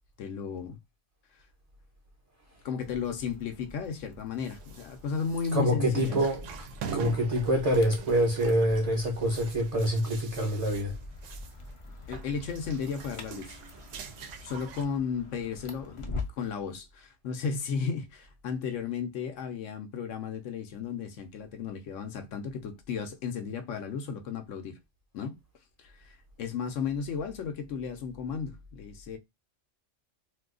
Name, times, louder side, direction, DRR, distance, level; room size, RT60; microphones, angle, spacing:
voice 1, 0.2-0.8 2.6-6.2 12.1-13.6 14.4-24.8 25.1-25.4 25.8-29.2, left 6 dB, 85° left, 1.0 m, -34 dB
sound 1, 2.8-16.5, left 3 dB, 45° left, 0.4 m, -45 dB
sound 2, 4.4-11.7 12.0-14.8, right 6 dB, 90° right, 0.9 m, -43 dB
voice 2, 5.5-6.6 6.9-11.0, equal, 40° right, 0.7 m, -26 dB
2.7 x 2.3 x 3.6 m
omnidirectional pair, 1.2 m